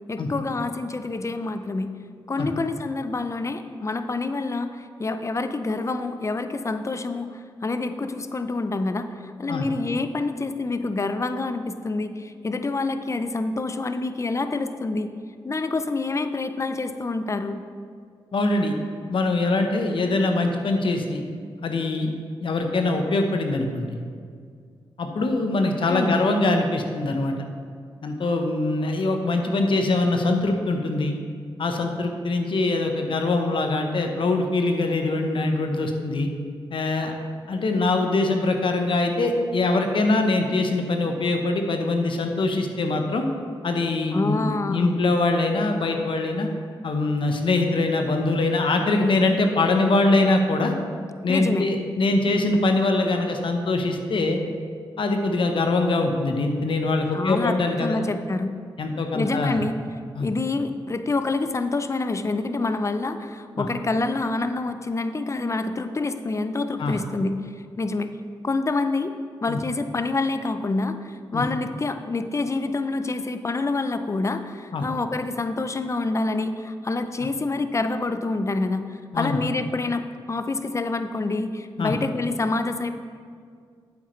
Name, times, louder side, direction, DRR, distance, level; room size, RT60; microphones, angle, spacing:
voice 1, 0.1-1.9 2.3-9.1 9.4-15.1 15.4-17.6 25.9-26.2 44.1-44.9 51.3-51.7 57.1-58.5 59.1-59.8 60.2-67.4 67.8-68.1 68.4-69.1 69.4-78.9 79.2-82.9, left 3 dB, 30° left, 9 dB, 0.6 m, -27 dB
voice 2, 18.3-18.7 19.1-21.2 21.6-22.1 22.4-24.0 25.0-27.3 28.0-31.1 31.6-36.3 36.7-37.1 37.5-43.2 43.6-46.5 46.8-50.7 51.2-54.4 55.0-58.0 58.8-59.6 60.1-60.3 63.6-63.7 66.8-67.0 69.5-69.6 71.3-71.4 74.7-74.9 79.1-79.4 81.8-81.9, left 2 dB, 60° left, 4 dB, 0.9 m, -23 dB
8.6 x 7.8 x 3.2 m, 2.1 s
cardioid pair, 50°, 10 cm